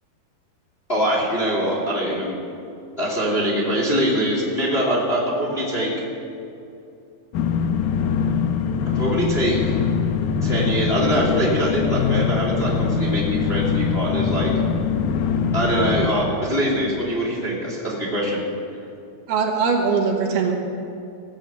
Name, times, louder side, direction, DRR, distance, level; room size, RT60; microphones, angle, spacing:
voice 1, 0.9-2.4 3.0-5.9 8.9-9.7 10.4-14.5 15.5-18.4, equal, 20° left, -5 dB, 2.1 m, -23 dB
sound 1, 7.3-16.1, left 6 dB, 75° left, 2.2 m, -22 dB
voice 2, 15.6-16.0 19.3-20.5, right 5 dB, 75° right, 0 dB, 3.3 m, -22 dB
18.0 x 7.3 x 7.9 m, 2.7 s
omnidirectional pair, 4.7 m